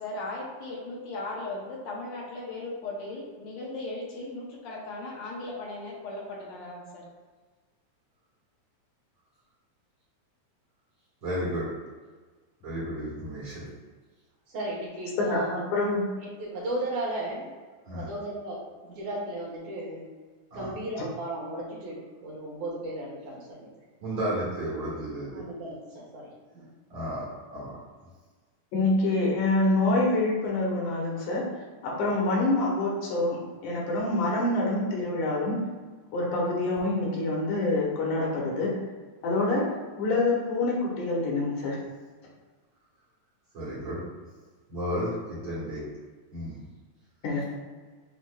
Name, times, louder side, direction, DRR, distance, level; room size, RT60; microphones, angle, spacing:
voice 1, 0.0-7.0, left 2 dB, 70° left, -3 dB, 1.9 m, -37 dB
voice 2, 11.2-11.7 12.6-13.6 17.8-18.1 20.5-20.7 24.0-25.4 26.9-27.3 27.5-27.7 43.5-44.0 44.7-45.8 46.3-46.6, equal, 45° right, -7 dB, 1.9 m, -32 dB
voice 3, 14.5-15.6 16.2-17.5 17.9-20.0 20.5-23.7 25.3-26.3 26.5-26.7, right 1 dB, 75° right, -5 dB, 2.7 m, -35 dB
voice 4, 15.2-16.0 28.7-31.5 31.8-35.6 36.1-38.8 39.2-39.7 40.0-41.8 47.2-47.5, left 2 dB, 90° left, -3 dB, 2.5 m, -26 dB
8.1 x 2.9 x 2.3 m, 1.4 s
omnidirectional pair, 3.4 m